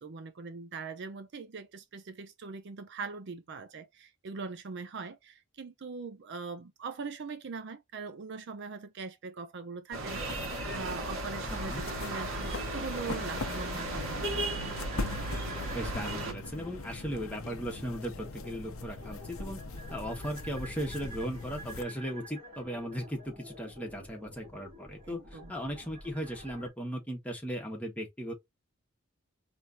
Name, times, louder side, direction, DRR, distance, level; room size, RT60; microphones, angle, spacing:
voice 1, 0.0-14.6 25.0-25.5, right 4 dB, 55° right, 0.5 m, -42 dB
sound 1, 9.9-16.3, right 2 dB, 70° right, 1.6 m, -36 dB
sound 2, 10.0-26.7, equal, 30° right, 2.6 m, -50 dB
sound 3, 10.1-21.8, left 2 dB, 75° left, 0.8 m, -41 dB
voice 2, 11.5-11.8 15.7-19.6 19.9-28.3, equal, 5° left, 1.5 m, -37 dB
4.5 x 3.3 x 2.7 m
head